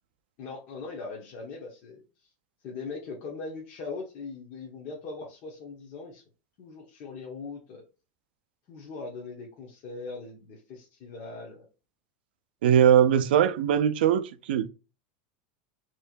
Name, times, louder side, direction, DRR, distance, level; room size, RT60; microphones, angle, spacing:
voice 1, 0.4-2.0 2.6-6.2 6.6-7.8 8.7-11.6, left 4 dB, 45° left, 1.1 m, -40 dB
voice 2, 12.6-14.7, right 9 dB, 90° right, 0.4 m, -21 dB
4.3 x 3.0 x 2.5 m
supercardioid pair, 145°, 5 cm